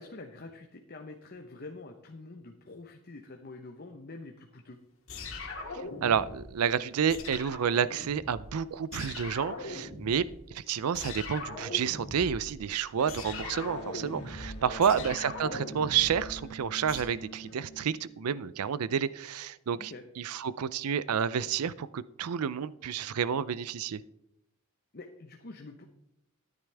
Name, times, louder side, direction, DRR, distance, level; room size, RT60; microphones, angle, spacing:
voice 1, 0.0-4.8 14.4-15.1 19.8-20.0 24.9-25.8, left 2 dB, 45° left, 4 dB, 0.9 m, -46 dB
sound 1, 5.1-6.6 7.1-8.6 8.9-10.5 10.9-17.0, left 3 dB, 60° left, 2.3 m, -41 dB
voice 2, 5.7-10.2 10.5-24.0, right 7 dB, 85° right, 18 dB, 0.5 m, -30 dB
Electric guitar, 13.0-18.4, right 2 dB, 90° left, 2.0 m, -48 dB
13.0 x 10.5 x 3.4 m, 0.80 s
head